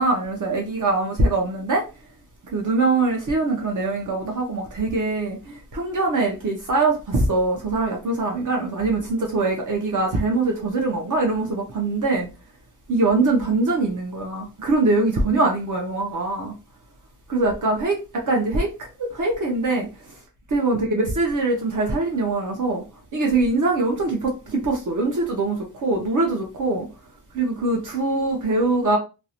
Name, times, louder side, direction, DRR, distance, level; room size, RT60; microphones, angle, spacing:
voice 1, 0.0-1.8 2.5-12.3 12.9-16.5 17.3-19.9 20.5-22.8 23.1-26.9 27.3-29.0, right 2 dB, 55° right, 0.6 m, -23 dB
2.5 x 2.0 x 2.8 m
wide cardioid pair, 165°, 36 cm